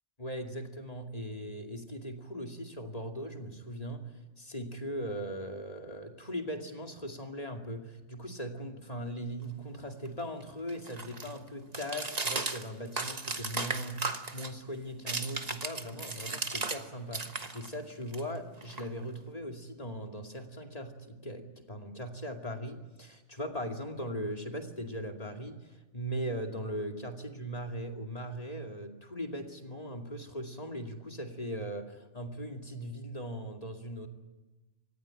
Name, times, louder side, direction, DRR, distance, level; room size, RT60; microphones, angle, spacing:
voice 1, 0.2-4.1 4.4-34.1, equal, 30° left, 3 dB, 2.5 m, -39 dB
sound 1, 9.4-16.8 17.1-19.3, right 3 dB, 35° right, 1.5 m, -37 dB
25.5 x 19.5 x 9.0 m, 1.1 s
omnidirectional pair, 1.2 m